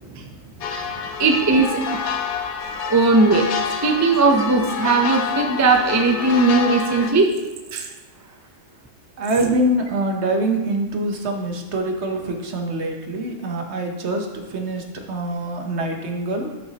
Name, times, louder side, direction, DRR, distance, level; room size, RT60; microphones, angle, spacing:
voice 1, 0.0-1.1 9.2-16.6, right 1 dB, 60° right, 3 dB, 1.2 m, -25 dB
sound 1, 0.6-7.1, left 6 dB, 65° left, 0.8 m, -27 dB
voice 2, 1.2-2.0 2.8-3.5 3.8-7.3 7.7-7.9, right 3 dB, 25° right, 3 dB, 0.3 m, -18 dB
10.0 x 5.8 x 2.9 m, 1.2 s
omnidirectional pair, 1.4 m